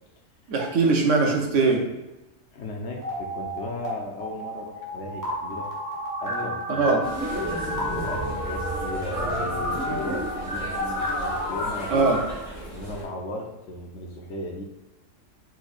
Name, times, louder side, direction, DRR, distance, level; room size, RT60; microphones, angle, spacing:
voice 1, 0.5-2.0 6.3-7.1 9.9-10.0 11.9-12.3, right 4 dB, 70° right, 2 dB, 1.0 m, -22 dB
voice 2, 2.5-5.7 6.2-6.9 7.3-12.2 12.7-14.6, left 1 dB, 65° left, 1 dB, 1.0 m, -36 dB
sound 1, 3.0-3.9 4.2-12.2, equal, 15° right, 0.9 m, -30 dB
sound 2, 7.0-13.0, equal, 40° left, 1.8 m, -37 dB
4.5 x 4.5 x 2.4 m, 1.0 s
omnidirectional pair, 1.4 m